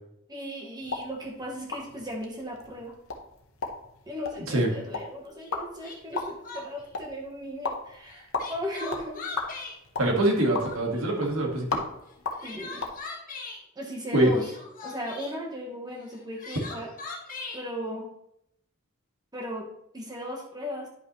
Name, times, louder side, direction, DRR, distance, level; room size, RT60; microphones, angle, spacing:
voice 1, 0.3-2.9 4.1-9.3 12.4-12.8 13.8-14.5 14.8-16.9 17.5-18.1 19.3-20.9, equal, 20° right, 0 dB, 1.0 m, -36 dB
sound 1, 0.8-13.0, left 4 dB, 75° left, 1.1 m, -37 dB
Crying sobbing, 5.4-5.5 5.8-6.9 8.1-9.8 10.2-11.0 12.1-13.6 14.3-15.3 16.1-17.6, left 3 dB, 40° left, 1.5 m, -40 dB
voice 2, 10.0-11.8 14.1-14.3, right 1 dB, 80° right, 1 dB, 1.7 m, -24 dB
10.0 x 5.5 x 3.0 m, 0.77 s
head